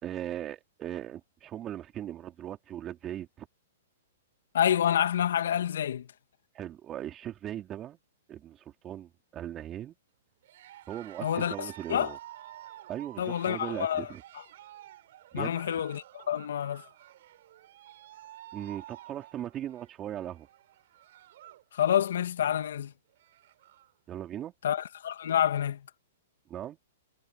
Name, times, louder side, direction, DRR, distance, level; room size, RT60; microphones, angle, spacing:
voice 1, 0.0-3.5 6.5-8.0 8.3-10.0 10.9-12.2 12.9-14.2 15.3-15.6 18.5-20.5 24.1-24.5 26.5-26.8, right 11 dB, 25° right, 3.7 m, -38 dB
voice 2, 4.5-6.1 11.2-12.1 13.2-14.1 15.3-16.9 21.7-22.9 24.6-25.9, left 10 dB, 70° left, 2.4 m, -28 dB
Cheering, 10.4-21.7 22.0-22.4 22.8-22.9 23.1-23.9, right 13 dB, 60° right, 6.4 m, -50 dB
hypercardioid pair, 130°, 0 cm